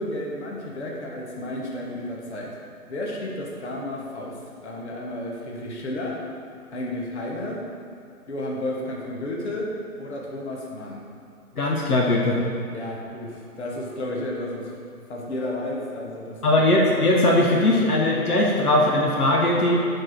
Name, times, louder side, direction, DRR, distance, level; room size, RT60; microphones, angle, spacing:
voice 1, 0.0-2.6 2.9-4.4 4.6-6.2 6.7-7.6 8.3-9.7 10.0-11.1 12.7-14.7 15.1-16.4, left 1 dB, 45° left, -2 dB, 1.1 m, -32 dB
voice 2, 11.6-12.4 16.4-19.8, left 1 dB, 70° left, -1 dB, 1.0 m, -20 dB
4.9 x 4.7 x 5.9 m, 2.4 s
figure-of-eight pair, 140°, 47 cm